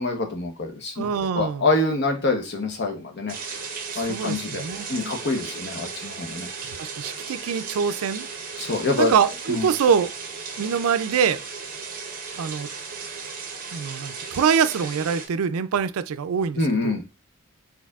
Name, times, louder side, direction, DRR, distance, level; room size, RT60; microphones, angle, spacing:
voice 1, 0.0-1.1 1.3-3.3 4.0-4.6 4.9-6.5 8.6-9.1 9.5-9.7 16.6-17.0, left 2 dB, 50° left, 0.8 m, -25 dB
voice 2, 1.0-1.7 3.9-5.1 6.8-8.3 9.0-10.1 10.6-11.4 12.4-12.7 13.7-17.0, right 7 dB, 80° right, 0.4 m, -24 dB
sound 1, 3.3-15.3, right 5 dB, 40° right, 0.9 m, -36 dB
4.4 x 4.0 x 2.4 m
head